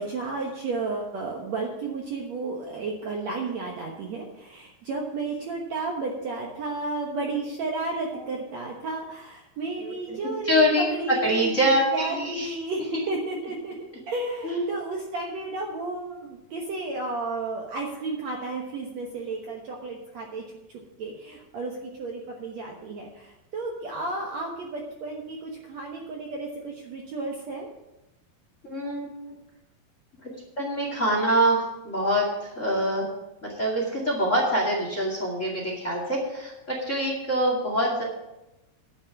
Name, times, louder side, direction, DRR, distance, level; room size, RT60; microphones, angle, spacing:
voice 1, 0.0-13.8 14.1-20.4 21.0-27.7, right 3 dB, 60° right, 0 dB, 1.9 m, -32 dB
voice 2, 9.8-10.2 10.4-10.9 11.2-12.5 14.4-14.7 28.6-29.1 30.2-30.3 30.6-33.1 33.4-38.0, equal, 25° left, -1 dB, 2.1 m, -25 dB
10.5 x 7.2 x 7.3 m, 0.95 s
omnidirectional pair, 4.5 m